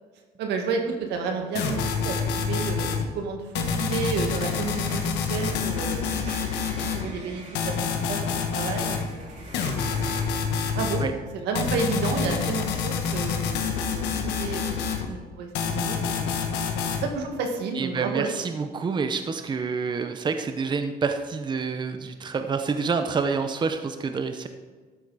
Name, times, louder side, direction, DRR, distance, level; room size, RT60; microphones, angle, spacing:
voice 1, 0.4-6.1 6.7-7.7 8.1-8.3 8.5-9.8 10.7-11.0 11.3-16.3 17.0-18.3, right 4 dB, 85° right, 3 dB, 1.8 m, -31 dB
sound 1, 1.5-3.0 3.5-7.0 7.5-9.0 9.5-11.0 11.5-15.0 15.5-17.0, left 6 dB, 85° left, 1.4 m, -27 dB
sound 2, 4.2-10.3, right 2 dB, 45° right, 3.2 m, -43 dB
voice 2, 17.7-24.5, right 5 dB, 25° right, 7 dB, 0.7 m, -28 dB
12.5 x 8.1 x 4.1 m, 1.4 s
cardioid pair, 110°, 17 cm